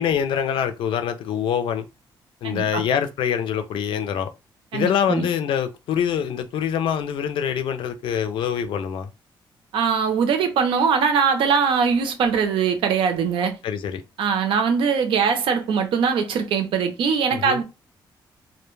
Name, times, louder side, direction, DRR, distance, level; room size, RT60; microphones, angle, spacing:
voice 1, 0.0-1.9 2.4-4.3 4.7-9.1 13.6-14.0 17.3-17.6, left 8 dB, 85° left, 0.4 m, -25 dB
voice 2, 2.4-2.8 4.7-5.3 9.7-13.6 14.2-17.6, right 6 dB, 90° right, 0.6 m, -21 dB
2.2 x 2.1 x 3.0 m
cardioid pair, 135°, 9 cm